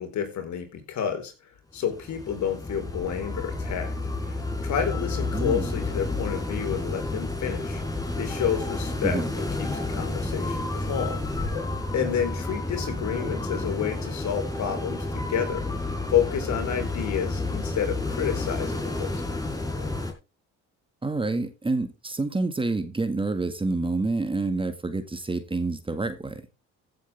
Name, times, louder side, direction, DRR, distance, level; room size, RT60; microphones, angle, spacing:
voice 1, 0.0-1.3 1.7-3.9 4.6-7.8 8.2-11.3 11.9-15.7 16.1-19.2, left 8 dB, 60° left, 4.5 m, -29 dB
sound 1, 1.8-20.1, left 2 dB, 10° left, 4.4 m, -30 dB
voice 2, 5.3-5.8 9.0-9.3 21.0-26.4, right 3 dB, 15° right, 1.9 m, -28 dB
15.5 x 8.0 x 3.5 m
supercardioid pair, 90°, 32 cm